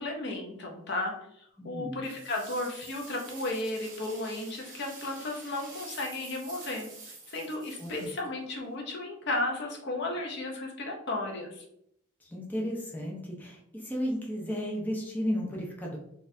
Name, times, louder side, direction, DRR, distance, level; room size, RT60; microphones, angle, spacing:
voice 1, 0.0-6.9 7.3-11.6, left 2 dB, 50° left, 1 dB, 0.6 m, -34 dB
voice 2, 1.6-2.0 7.8-8.1 12.2-16.0, equal, 10° left, -2 dB, 0.5 m, -34 dB
sound 1, 2.0-8.7, right 3 dB, 40° right, 1.1 m, -48 dB
4.0 x 2.4 x 2.6 m, 0.73 s
head